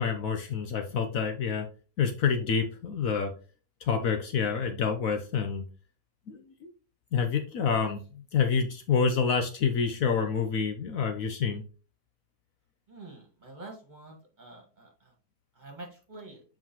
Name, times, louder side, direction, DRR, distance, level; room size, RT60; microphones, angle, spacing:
voice 1, 0.0-1.7 2.0-3.3 3.9-5.6 6.3-6.7 7.1-11.6, left 6 dB, 65° left, 6 dB, 1.1 m, -28 dB
voice 2, 12.9-15.1 15.6-16.4, right 2 dB, 30° right, 0 dB, 1.9 m, -47 dB
7.5 x 4.6 x 2.9 m, 0.37 s
omnidirectional pair, 1.7 m